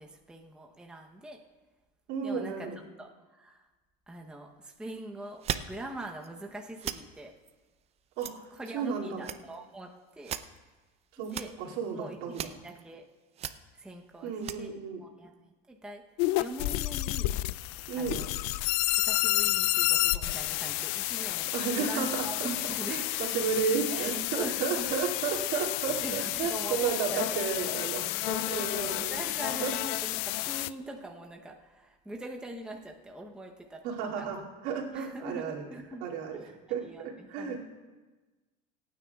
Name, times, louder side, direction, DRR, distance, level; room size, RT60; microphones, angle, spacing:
voice 1, 0.0-1.4 2.2-3.6 4.1-7.3 8.5-10.4 11.2-11.5 11.9-13.1 13.7-14.7 15.0-16.0 16.4-17.4 18.0-18.3 19.0-23.2 23.9-25.0 25.5-27.7 28.3-34.3 34.9-36.1 36.3-36.6 36.8-37.6, right 2 dB, 5° right, 1 dB, 0.8 m, -43 dB
voice 2, 2.1-2.8 8.2-8.3 8.7-9.2 11.2-12.5 14.2-15.0 17.9-18.2 21.5-22.5 22.9-28.1 28.5-29.2 29.6-29.7 33.8-34.4 34.6-35.6 36.0-36.4 36.7-37.6, right 6 dB, 70° right, -3 dB, 2.5 m, -32 dB
sound 1, 5.4-5.7 6.1-6.3 6.8-7.0 7.4-7.5 8.2-8.9 9.1-9.8 10.1-10.6 11.2-11.5 12.0-12.1 12.3-12.8 13.3-13.5 14.3-14.6, right 10 dB, 30° right, 0.5 m, -37 dB
sound 2, 16.2-30.7, left 18 dB, 70° left, 0.4 m, -30 dB
26.5 x 9.4 x 2.3 m, 1.3 s
supercardioid pair, 125°, 21 cm